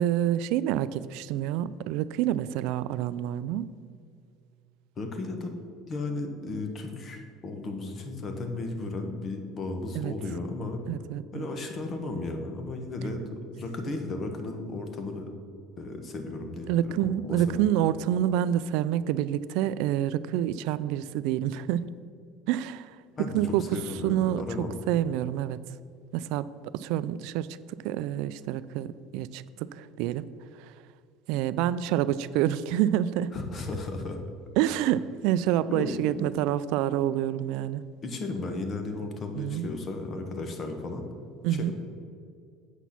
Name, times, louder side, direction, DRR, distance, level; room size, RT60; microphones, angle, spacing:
voice 1, 0.0-3.7 9.9-10.1 10.9-11.5 16.7-21.9 22.5-25.6 26.1-26.5 26.7-27.5 27.8-30.2 31.3-33.3 34.6-37.8 39.3-39.7 41.4-41.7, right 11 dB, 70° right, 16 dB, 0.3 m, -27 dB
voice 2, 5.0-5.5 5.9-10.8 11.3-15.3 15.8-16.7 17.0-17.7 23.2-24.7 33.3-34.2 34.7-34.8 35.7-36.3 38.0-41.1 41.4-41.7, left 2 dB, 30° left, 5 dB, 1.1 m, -35 dB
8.1 x 6.2 x 5.9 m, 2.3 s
cardioid pair, 145°, 0 cm